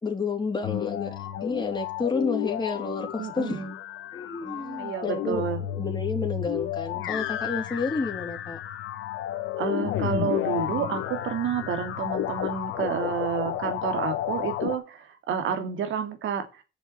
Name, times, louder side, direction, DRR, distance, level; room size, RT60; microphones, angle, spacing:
voice 1, 0.0-3.7 4.1-5.5 5.8-8.6, left 4 dB, 20° left, 3.3 m, -30 dB
sound 1, 0.6-14.8, left 11 dB, 90° left, 1.5 m, -32 dB
voice 2, 3.2-3.7 4.4-5.6 9.6-16.6, right 7 dB, 75° right, 2.8 m, -30 dB
9.7 x 7.1 x 8.3 m
cardioid pair, 90°, 20 cm